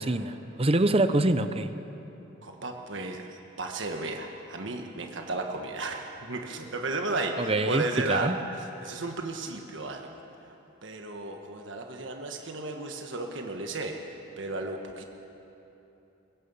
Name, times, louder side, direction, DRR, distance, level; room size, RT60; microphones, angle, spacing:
voice 1, 0.0-1.7 7.4-8.3, right 2 dB, 30° right, 11 dB, 0.7 m, -25 dB
voice 2, 2.4-3.2 3.6-8.4 8.8-10.1 10.8-14.0 14.4-15.0, right 2 dB, 65° right, 3 dB, 1.4 m, -34 dB
23.0 x 21.0 x 5.6 m, 3.0 s
head